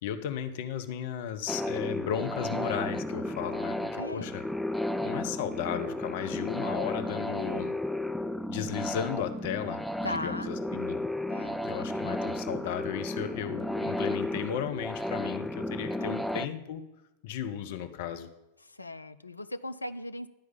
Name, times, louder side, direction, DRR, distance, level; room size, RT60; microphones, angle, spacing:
voice 1, 0.0-4.4 5.0-7.7 8.5-9.8 10.1-11.0 11.6-16.8 17.2-18.3, left 9 dB, 50° left, 9 dB, 0.8 m, -35 dB
sound 1, 1.5-16.5, left 1 dB, ahead, 0.4 m, -33 dB
voice 2, 4.0-4.3 10.0-10.5 11.3-11.6 16.0-16.2 18.6-20.3, left 1 dB, 80° left, 12 dB, 0.4 m, -38 dB
11.5 x 4.7 x 7.2 m, 0.97 s
figure-of-eight pair, 90°, 0 cm